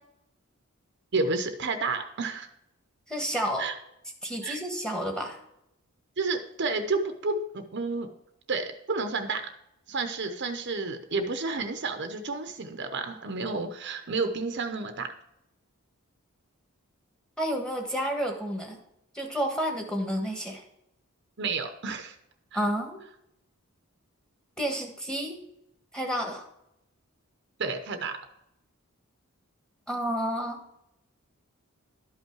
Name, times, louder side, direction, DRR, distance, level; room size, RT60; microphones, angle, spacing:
voice 1, 1.1-2.5 3.6-3.7 4.4-4.6 6.2-8.1 8.5-9.5 9.9-15.1 21.4-22.2 22.5-22.6 27.6-28.2, right 3 dB, 50° right, 7 dB, 0.7 m, -30 dB
voice 2, 3.1-3.7 4.2-5.4 17.4-18.8 19.1-20.6 22.5-23.0 24.6-25.4 25.9-26.5 29.9-30.6, equal, 5° left, 1 dB, 1.4 m, -30 dB
12.0 x 5.5 x 4.6 m, 0.80 s
head